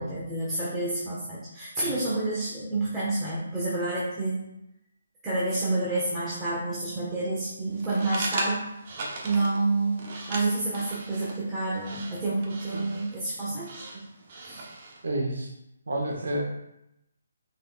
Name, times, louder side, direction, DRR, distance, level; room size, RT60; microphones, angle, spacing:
voice 1, 0.0-4.4 5.2-8.6 9.2-14.1 14.4-14.7, right 2 dB, 15° right, -9 dB, 1.2 m, -29 dB
sound 1, 7.7-15.1, right 2 dB, 40° right, 0.9 m, -38 dB
voice 2, 15.0-15.5 15.9-16.4, right 1 dB, 70° right, -1 dB, 1.4 m, -30 dB
5.6 x 3.9 x 2.4 m, 0.84 s
figure-of-eight pair, 150°, 0 cm